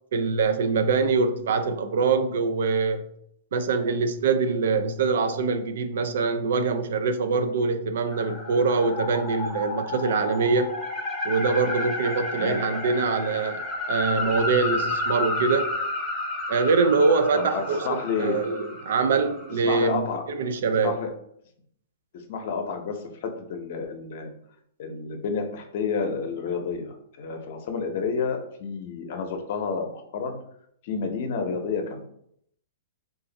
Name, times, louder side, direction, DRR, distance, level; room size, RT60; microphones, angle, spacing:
voice 1, 0.1-3.0 3.5-10.7 11.2-15.7 16.5-20.0 20.3-20.9, right 4 dB, 70° right, 0.4 m, -24 dB
sound 1, 8.1-19.6, left 2 dB, 10° left, 0.7 m, -31 dB
voice 2, 17.3-18.4 19.6-20.2 20.8-21.1 22.1-24.3 24.8-30.4 30.8-32.0, left 5 dB, 55° left, 0.7 m, -30 dB
2.5 x 2.4 x 3.9 m
hypercardioid pair, 135°, 0 cm